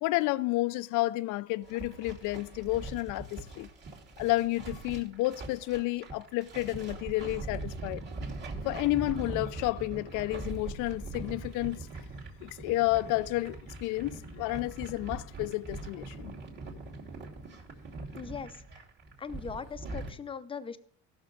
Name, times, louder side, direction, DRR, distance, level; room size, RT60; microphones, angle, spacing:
voice 1, 0.0-3.7 4.2-8.0 8.6-11.9 12.4-16.3, left 19 dB, 60° left, 0.5 m, -31 dB
sound 1, 1.6-20.1, right 3 dB, 30° right, 2.8 m, -42 dB
voice 2, 18.1-18.8 19.2-20.8, left 6 dB, 15° left, 0.7 m, -40 dB
16.5 x 6.4 x 3.9 m
cardioid pair, 115°, 34 cm